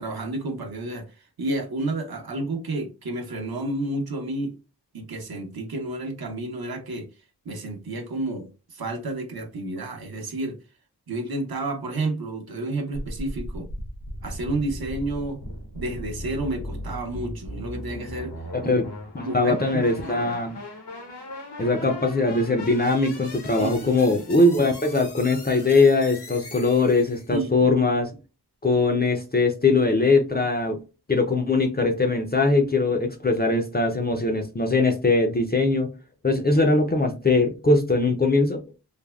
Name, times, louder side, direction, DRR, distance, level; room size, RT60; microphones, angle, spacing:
voice 1, 0.0-4.6 4.9-7.1 7.4-10.6 11.1-13.7 14.2-15.4 15.7-18.7 19.2-20.3 23.6-24.0 27.3-27.7, right 2 dB, 65° right, 0.7 m, -31 dB
sound 1, 12.9-27.3, left 1 dB, 80° left, 0.9 m, -38 dB
voice 2, 18.5-18.9 19.2-20.6 21.6-28.1 28.6-30.8 31.1-35.9 36.2-38.6, left 3 dB, 25° left, 0.4 m, -21 dB
3.3 x 2.1 x 2.2 m
wide cardioid pair, 65°, 40 cm